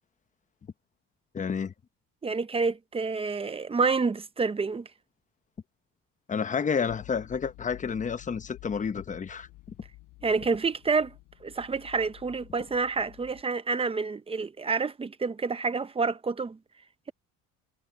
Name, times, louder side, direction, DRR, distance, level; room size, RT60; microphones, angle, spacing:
voice 1, 1.3-1.7 6.3-9.5, left 6 dB, 20° left, 1.0 m, -30 dB
voice 2, 2.2-4.9 10.2-11.1 11.4-16.6, right 4 dB, 15° right, 0.7 m, -28 dB
sound 1, 6.9-13.4, left 20 dB, 85° left, 6.5 m, -50 dB
cardioid pair, 145°, 34 cm